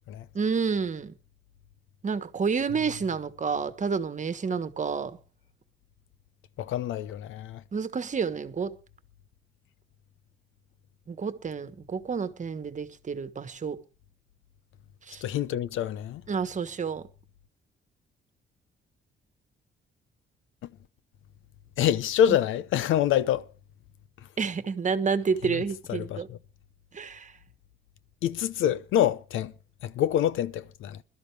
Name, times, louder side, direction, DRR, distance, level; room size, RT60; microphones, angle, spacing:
voice 1, 0.3-1.1 2.0-5.2 7.7-8.7 11.1-13.8 15.1-15.2 16.3-17.1 22.3-22.4 24.4-26.3 26.9-27.3, right 5 dB, 40° right, 1.4 m, -29 dB
voice 2, 6.6-7.6 15.2-16.2 21.8-23.5 25.5-25.6 25.9-26.4 28.2-29.5 29.8-31.0, left 10 dB, 85° left, 0.8 m, -26 dB
21.5 x 12.5 x 3.4 m
cardioid pair, 90°, 20 cm